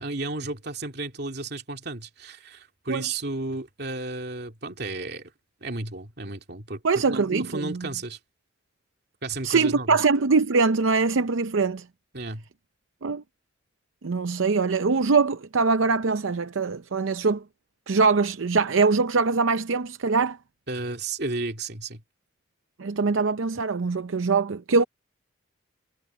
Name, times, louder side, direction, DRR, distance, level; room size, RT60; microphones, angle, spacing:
voice 1, 0.0-5.3 5.6-8.2 9.2-10.0 12.1-12.4 20.7-22.0, right 2 dB, 55° right, 2.7 m, -33 dB
voice 2, 6.8-7.9 9.4-11.8 13.0-13.2 14.0-17.4 17.9-20.4 22.8-24.8, right 4 dB, 80° right, 0.6 m, -23 dB
head